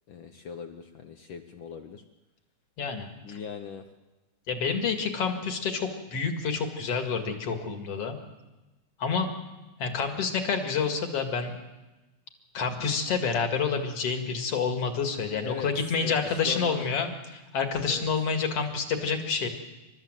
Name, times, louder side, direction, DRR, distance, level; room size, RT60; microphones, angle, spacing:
voice 1, 0.1-2.0 3.2-3.9 15.4-15.7 15.9-16.9 17.9-18.1, left 7 dB, 80° left, 7 dB, 1.1 m, -40 dB
voice 2, 2.8-3.4 4.5-8.2 9.0-9.3 9.8-11.6 12.5-19.5, left 5 dB, 55° left, 5 dB, 2.9 m, -28 dB
28.5 x 13.0 x 7.6 m, 1.1 s
omnidirectional pair, 3.5 m